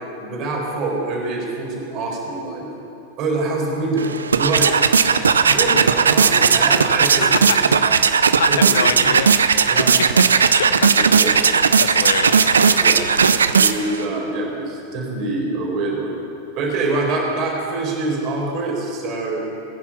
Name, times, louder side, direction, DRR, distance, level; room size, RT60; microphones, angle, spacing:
voice 1, 0.2-2.7 3.2-4.7 5.4-7.5 7.8-8.2 8.5-9.1 9.7-9.9 10.9-11.4 12.8-13.0 13.5-16.2 16.5-19.5, right 2 dB, 40° right, -1 dB, 4.4 m, -25 dB
sound 1, 4.0-14.0, right 6 dB, 80° right, 0.5 m, -16 dB
voice 2, 7.5-7.9 8.4-11.4 11.8-13.1, left 8 dB, 70° left, 12 dB, 0.6 m, -27 dB
21.5 x 10.0 x 5.7 m, 2.9 s
figure-of-eight pair, 90°, 0 cm